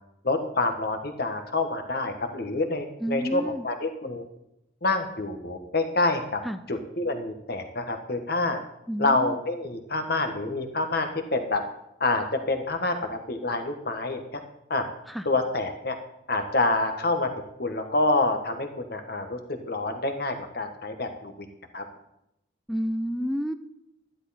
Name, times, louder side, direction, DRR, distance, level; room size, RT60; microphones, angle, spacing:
voice 1, 0.2-4.2 4.8-6.4 6.7-8.6 9.0-11.6 12.0-14.4 14.7-14.8 15.2-16.0 16.3-17.3 17.6-19.4 19.6-21.3 21.7-21.8, left 2 dB, 55° left, 6 dB, 1.4 m, -27 dB
voice 2, 3.0-3.6 6.5-6.6 8.9-9.4 22.7-23.5, equal, ahead, 9 dB, 0.4 m, -29 dB
13.0 x 11.0 x 4.2 m, 0.84 s
head